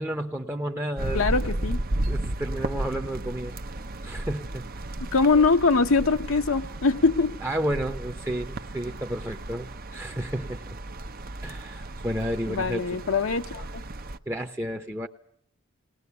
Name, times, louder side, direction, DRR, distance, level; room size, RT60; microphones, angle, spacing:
voice 1, 0.0-1.3 2.1-3.5 4.0-4.7 7.4-10.6 11.4-13.0 14.3-15.1, right 1 dB, 10° right, 0.9 m, -31 dB
sound 1, 1.0-14.2, right 1 dB, 45° right, 0.9 m, -34 dB
voice 2, 1.1-1.8 5.1-7.3 12.5-13.6, left 4 dB, 70° left, 0.9 m, -22 dB
20.0 x 20.0 x 8.3 m
head